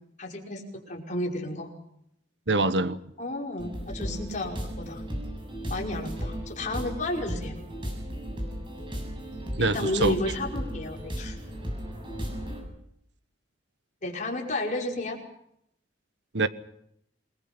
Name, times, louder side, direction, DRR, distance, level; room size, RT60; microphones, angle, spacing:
voice 1, 0.2-1.7 3.2-5.1 5.7-7.6 9.6-11.4 14.0-15.2, left 1 dB, 40° left, 0 dB, 5.4 m, -32 dB
voice 2, 2.5-3.0 9.6-10.2 16.3-16.5, right 2 dB, 70° right, 13 dB, 1.2 m, -24 dB
sound 1, 3.6-12.6, equal, 25° right, 7.3 m, -35 dB
28.5 x 21.0 x 6.0 m, 0.75 s
head